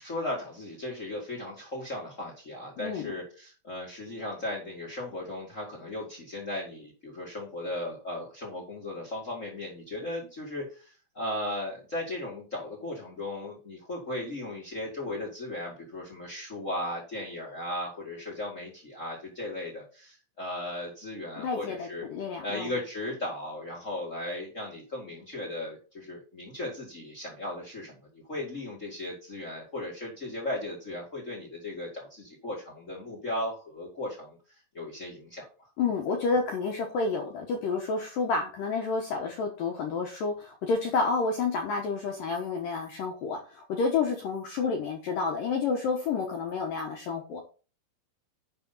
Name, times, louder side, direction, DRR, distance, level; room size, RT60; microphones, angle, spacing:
voice 1, 0.0-22.1 22.4-34.4 34.7-35.7, left 1 dB, 45° left, -2 dB, 0.9 m, -36 dB
voice 2, 2.8-3.1 21.4-22.7 35.8-47.4, left 4 dB, 70° left, 2 dB, 2.2 m, -30 dB
11.0 x 5.6 x 4.1 m, 0.36 s
omnidirectional pair, 5.2 m